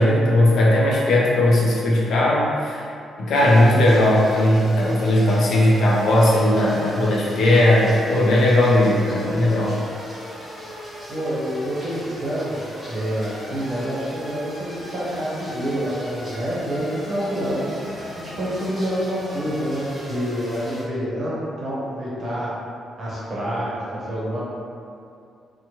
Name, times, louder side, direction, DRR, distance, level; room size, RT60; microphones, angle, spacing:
voice 1, 0.0-2.9 3.2-9.8, left 1 dB, 60° left, -5 dB, 0.5 m, -17 dB
sound 1, 3.3-20.8, equal, 10° right, 1.3 m, -37 dB
voice 2, 11.1-12.6 12.9-22.5 23.0-24.4, equal, 30° right, -7 dB, 0.8 m, -27 dB
3.0 x 2.1 x 2.9 m, 2.4 s
cardioid pair, 150°, 0 cm